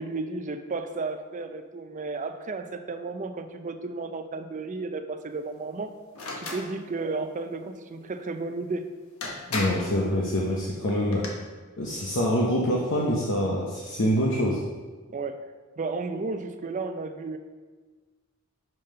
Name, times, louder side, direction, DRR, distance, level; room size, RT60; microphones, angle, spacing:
voice 1, 0.0-5.9 6.4-8.9 12.3-12.5 15.1-15.4 15.8-17.4, right 3 dB, 35° right, 8 dB, 0.5 m, -33 dB
sound 1, 6.1-6.7 8.7-8.8 9.2-9.9 10.9-11.3, left 2 dB, 80° left, 1.2 m, -33 dB
voice 2, 9.5-11.2 11.8-14.6, equal, 60° left, -3 dB, 0.9 m, -25 dB
5.6 x 5.3 x 5.5 m, 1.4 s
head